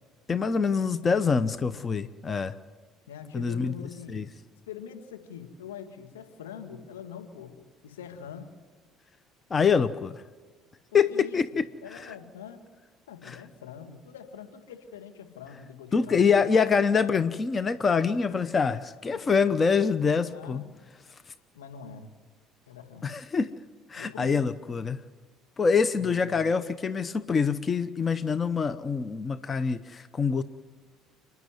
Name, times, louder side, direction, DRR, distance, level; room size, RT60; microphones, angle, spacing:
voice 1, 0.3-2.5 3.3-4.3 9.5-10.2 10.9-11.6 11.9-12.1 13.2-13.4 15.9-20.6 21.3-21.4 23.0-23.5 23.9-25.0 25.6-30.4, left 5 dB, 35° left, 13 dB, 0.8 m, -25 dB
voice 2, 3.1-4.3 4.7-7.6 7.8-8.5 10.9-11.4 11.8-12.6 13.1-16.3 19.1-19.4 20.1-20.8 21.5-22.1 22.7-23.1 24.0-24.3 25.9-26.4, left 7 dB, 80° left, 4 dB, 2.2 m, -44 dB
30.0 x 11.0 x 9.5 m, 1.4 s
hypercardioid pair, 60°, 0 cm